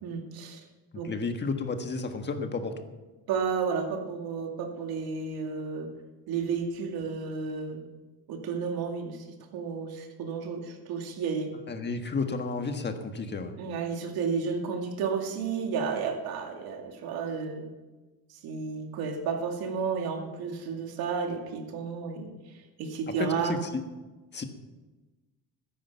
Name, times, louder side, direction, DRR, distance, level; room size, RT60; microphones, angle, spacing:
voice 1, 0.0-0.6 0.9-1.1 3.3-5.9 6.3-7.8 8.3-9.2 9.5-11.5 13.6-17.6 18.4-22.3 22.8-23.6, right 5 dB, 85° right, 3 dB, 2.4 m, -32 dB
voice 2, 1.0-2.8 11.7-13.6 23.2-23.8 24.3-24.4, left 4 dB, 30° left, 6 dB, 1.5 m, -32 dB
14.0 x 10.5 x 5.8 m, 1.2 s
cardioid pair, 130°, 36 cm